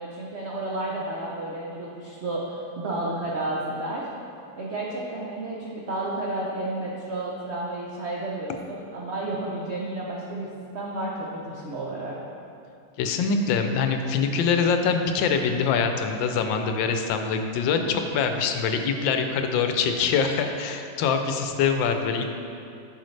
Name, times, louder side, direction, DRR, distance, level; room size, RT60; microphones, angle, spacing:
voice 1, 0.0-4.1 4.6-12.2 17.8-18.0, right 2 dB, 70° right, -4 dB, 0.6 m, -31 dB
voice 2, 13.0-22.3, left 5 dB, 80° left, 6 dB, 1.3 m, -24 dB
8.0 x 6.2 x 3.2 m, 2.5 s
omnidirectional pair, 2.1 m